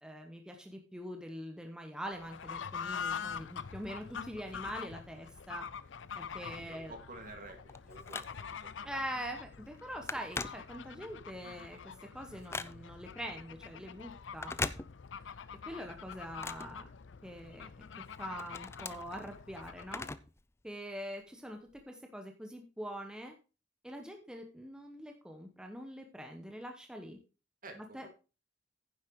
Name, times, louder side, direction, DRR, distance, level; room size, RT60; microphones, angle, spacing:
voice 1, 0.0-5.7 6.2-6.9 8.8-11.8 12.1-14.5 15.7-16.9 17.2-17.7 18.2-20.1 20.6-23.3 23.8-27.2 27.7-28.1, equal, 5° right, 3 dB, 0.9 m, -44 dB
Fowl / Bird, 2.1-20.2, left 7 dB, 90° left, 0.6 m, -45 dB
voice 2, 6.7-8.9 27.6-28.0, right 2 dB, 50° right, 5 dB, 2.3 m, -50 dB
Telephone, 7.3-8.7 9.2-9.4 9.7-11.2 11.6-13.1 14.3-15.4 15.7-17.5 17.9-20.4 20.7-20.8 21.7-21.8, left 3 dB, 15° left, 0.4 m, -42 dB
10.0 x 7.4 x 4.6 m, 0.33 s
head